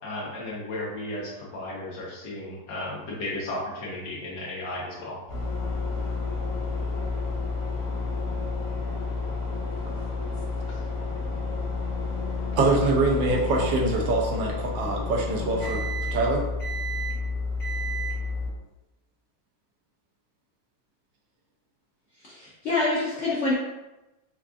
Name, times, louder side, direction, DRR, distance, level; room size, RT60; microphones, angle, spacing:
voice 1, 0.0-5.2 10.7-10.8, left 1 dB, 70° left, -5 dB, 1.6 m, -34 dB
sound 1, 5.3-18.5, left 3 dB, 50° left, 1.7 m, -30 dB
voice 2, 12.6-16.4, right 2 dB, 75° right, -1 dB, 1.2 m, -24 dB
voice 3, 22.3-23.5, left 2 dB, 90° left, -7 dB, 0.6 m, -26 dB
4.6 x 2.4 x 2.4 m, 1.0 s
omnidirectional pair, 2.0 m